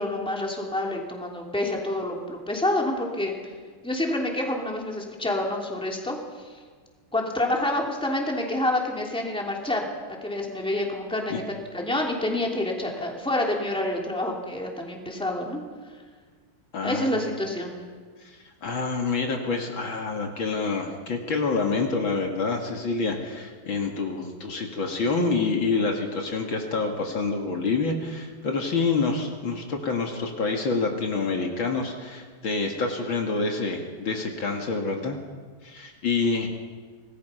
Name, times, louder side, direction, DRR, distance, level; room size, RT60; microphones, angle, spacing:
voice 1, 0.0-3.3 3.8-6.2 7.1-9.9 10.2-11.4 11.7-15.6 16.8-17.8, left 1 dB, ahead, -1 dB, 3.0 m, -27 dB
voice 2, 16.7-17.2 18.2-35.2 35.6-36.5, left 4 dB, 65° left, 2 dB, 2.8 m, -27 dB
26.5 x 19.5 x 5.7 m, 1.5 s
omnidirectional pair, 2.4 m